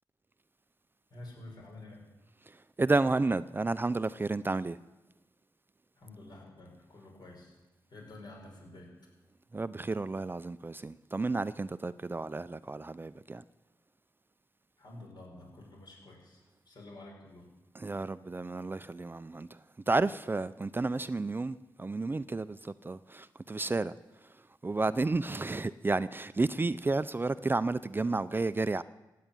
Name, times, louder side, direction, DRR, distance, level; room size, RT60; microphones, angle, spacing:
voice 1, 1.1-2.0 6.0-7.5 7.9-8.9 14.8-16.4 16.7-17.4, left 2 dB, 60° left, 6.4 m, -49 dB
voice 2, 2.8-4.8 9.5-13.4 17.7-19.5 19.9-23.9 24.6-28.8, right 3 dB, 25° right, 0.5 m, -31 dB
16.0 x 9.4 x 8.9 m
cardioid pair, 70°, 8 cm